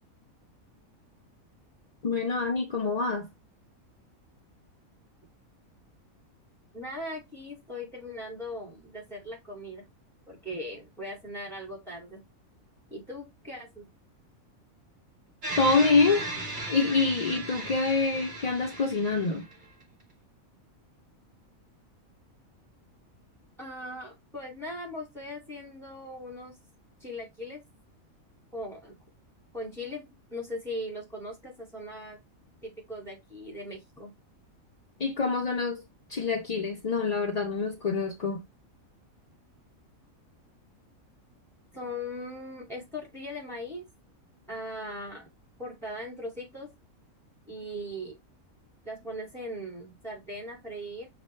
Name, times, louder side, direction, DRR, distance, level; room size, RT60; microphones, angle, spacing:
voice 1, 2.0-3.3 15.6-16.3 16.7-19.4 35.0-35.8 36.1-38.4, left 4 dB, 50° left, 0.5 m, -26 dB
voice 2, 6.7-9.8 10.3-12.2 12.9-13.9 23.6-26.6 27.0-27.6 28.5-29.0 29.5-32.2 32.6-34.1 41.7-43.9 44.5-45.3 45.6-46.7 47.5-48.2 48.8-51.1, left 1 dB, ahead, 2.1 m, -39 dB
sound 1, 15.4-19.8, right 2 dB, 40° right, 1.1 m, -36 dB
6.3 x 2.5 x 3.1 m
omnidirectional pair, 1.5 m